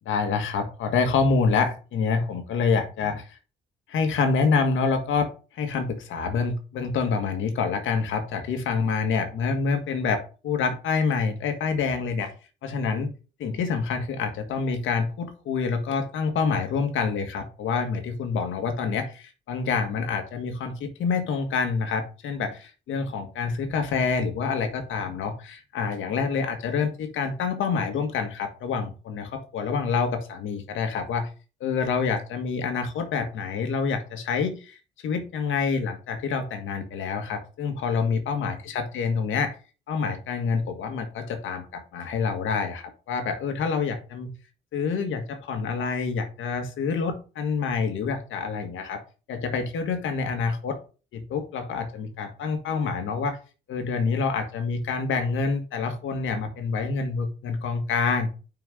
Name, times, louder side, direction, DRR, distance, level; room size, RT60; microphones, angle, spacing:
voice 1, 0.1-3.4 3.9-12.3 12.6-13.1 13.4-31.3 31.6-39.5 39.9-44.3 44.7-49.0 49.3-50.8 51.1-53.4 53.7-58.3, left 5 dB, 80° left, 7 dB, 1.7 m, -27 dB
6.0 x 4.6 x 4.8 m, 0.34 s
cardioid pair, 90°, 20 cm